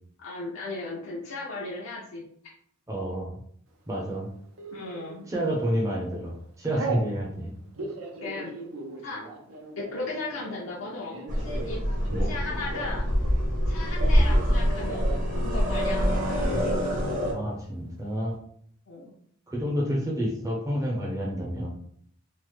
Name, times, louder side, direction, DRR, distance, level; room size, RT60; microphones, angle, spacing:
voice 1, 0.2-2.2 4.7-5.3 8.2-8.5 9.0-9.3 9.8-11.8 12.2-13.1 13.7-16.5 18.9-19.1, left 2 dB, 80° left, -4 dB, 0.5 m, -36 dB
voice 2, 2.9-3.3 3.9-4.3 5.3-6.3 6.6-7.5 12.1-12.3 16.5-16.6 17.3-18.4 19.5-21.7, equal, 15° right, -3 dB, 0.5 m, -29 dB
Telephone, 4.6-5.1 5.7-5.9 6.2-7.1 7.6-13.1 13.4-14.5 14.8-15.3 15.6-15.7 15.9-16.5, right 3 dB, 85° right, 0.6 m, -38 dB
sound 1, 11.3-17.3, equal, 40° right, 0.8 m, -25 dB
3.1 x 2.0 x 3.1 m, 0.64 s
head